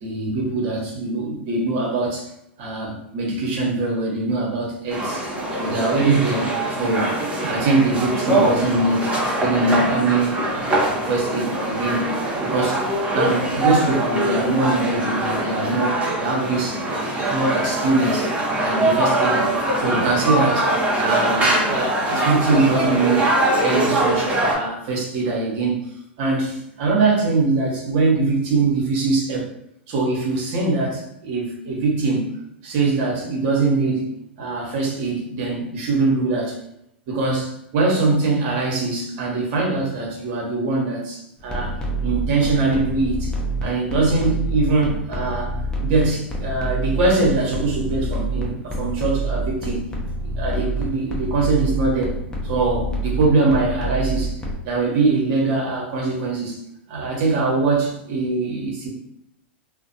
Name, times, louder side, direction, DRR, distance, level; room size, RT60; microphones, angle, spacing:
voice 1, 0.0-2.3 2.6-12.1 12.4-12.8 13.1-18.3 18.6-23.3 23.6-29.5 29.9-32.3 32.6-34.1 34.4-36.6 37.1-43.3 43.6-45.5 45.8-49.8 50.4-52.2 52.4-54.4 54.6-56.6 56.9-58.9, right 3 dB, 55° right, -2 dB, 1.0 m, -22 dB
sound 1, 4.9-24.5, right 1 dB, 20° right, 0.7 m, -22 dB
sound 2, 41.4-54.5, right 2 dB, 10° left, 0.6 m, -27 dB
2.5 x 2.1 x 2.6 m, 0.79 s
hypercardioid pair, 105°, 6 cm